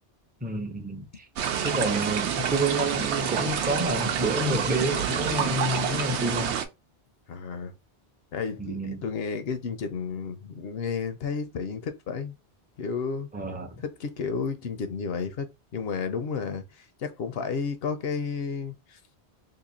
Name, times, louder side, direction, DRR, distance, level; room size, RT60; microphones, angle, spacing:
voice 1, 0.4-1.3 1.6-6.5 8.6-9.0 13.3-13.8, right 1 dB, 15° right, 0.3 m, -29 dB
sound 1, 1.4-6.6, right 8 dB, 85° right, 0.9 m, -28 dB
voice 2, 7.3-7.7 8.3-12.4 12.8-13.3 13.8-19.0, left 5 dB, 70° left, 0.8 m, -32 dB
2.9 x 2.6 x 3.8 m
omnidirectional pair, 1.1 m